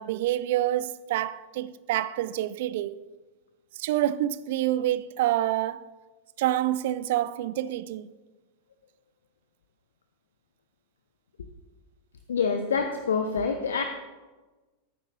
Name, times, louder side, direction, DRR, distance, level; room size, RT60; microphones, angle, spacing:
voice 1, 0.0-3.0 3.8-5.9 6.4-8.1, right 13 dB, 55° right, 0.4 m, -27 dB
voice 2, 12.3-13.8, left 5 dB, 65° left, 0.8 m, -26 dB
18.0 x 9.2 x 2.6 m
figure-of-eight pair, 90°, 0 cm